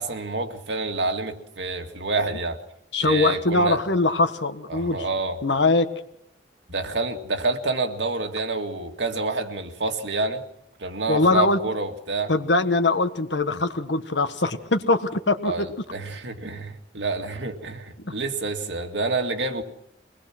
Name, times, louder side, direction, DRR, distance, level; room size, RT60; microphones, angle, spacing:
voice 1, 0.0-2.6 3.0-3.8 4.7-5.4 6.7-10.4 10.8-12.3 15.4-15.7 15.9-19.6, right 3 dB, 85° right, 2.1 m, -28 dB
voice 2, 2.9-5.0 5.4-5.9 11.1-11.6 12.3-15.7 18.0-18.1, left 2 dB, 85° left, 1.6 m, -22 dB
23.5 x 20.0 x 6.1 m
head